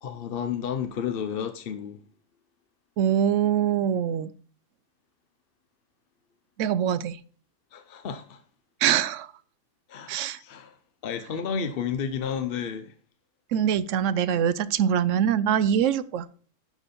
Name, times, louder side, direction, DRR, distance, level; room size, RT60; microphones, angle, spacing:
voice 1, 0.0-2.0 7.7-8.4 9.9-10.8 11.0-12.9, left 7 dB, 55° left, 0.7 m, -32 dB
voice 2, 3.0-4.3 6.6-7.2 8.8-9.3 10.1-10.4 13.5-16.3, right 9 dB, 70° right, 0.9 m, -23 dB
10.5 x 5.2 x 4.2 m
omnidirectional pair, 1.4 m